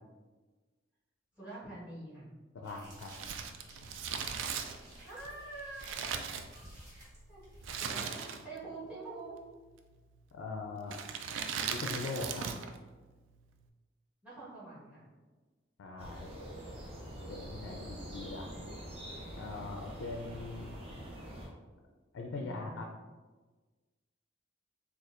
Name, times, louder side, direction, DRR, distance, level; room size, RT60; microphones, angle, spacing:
voice 1, 1.4-2.3 4.3-6.8 7.3-7.4 7.8-9.4 14.2-15.1 22.4-22.8, right 2 dB, 5° right, -9 dB, 1.3 m, -47 dB
voice 2, 2.6-3.1 10.3-11.0 11.7-12.5 15.8-16.3 17.3-18.5 19.3-20.8 22.1-22.9, left 3 dB, 90° left, 1 dB, 0.3 m, -41 dB
sound 1, 2.6-7.9, equal, 55° right, 1.3 m, -54 dB
Crumpling crinkling, 3.0-7.0 7.6-8.7 8.9-9.0 9.8-10.2 10.8-12.8 13.0-13.1, right 7 dB, 85° right, 0.3 m, -38 dB
sound 2, 16.0-21.5, equal, 30° right, 0.7 m, -45 dB
4.2 x 2.3 x 2.5 m, 1.3 s
head